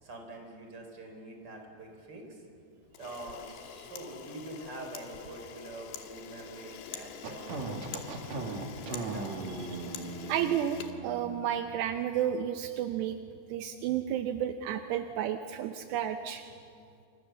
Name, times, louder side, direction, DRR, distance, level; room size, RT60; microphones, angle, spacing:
voice 1, 0.0-2.5 3.0-7.8 8.2-8.6 8.9-9.3, right 2 dB, 25° right, 3 dB, 4.2 m, -45 dB
Camera, 2.9-11.7, left 8 dB, 70° left, 3.4 m, -45 dB
sound 1, 7.2-11.4, right 3 dB, 50° right, 2.8 m, -38 dB
voice 2, 10.3-13.2 13.5-16.5, right 10 dB, 80° right, 7 dB, 2.8 m, -32 dB
29.0 x 26.0 x 7.0 m, 2.4 s
omnidirectional pair, 5.1 m